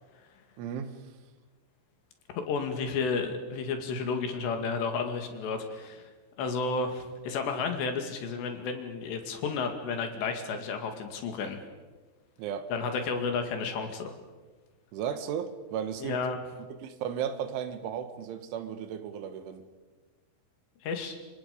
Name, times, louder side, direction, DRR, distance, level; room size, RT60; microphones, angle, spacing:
voice 1, 0.6-0.9 12.4-12.7 14.9-16.2 16.8-19.7, right 8 dB, 85° right, 3.9 m, -35 dB
voice 2, 2.4-6.1 6.4-11.6 12.7-14.1 16.0-16.4 20.8-21.2, left 4 dB, 70° left, 4.3 m, -32 dB
29.5 x 25.0 x 5.4 m
omnidirectional pair, 5.4 m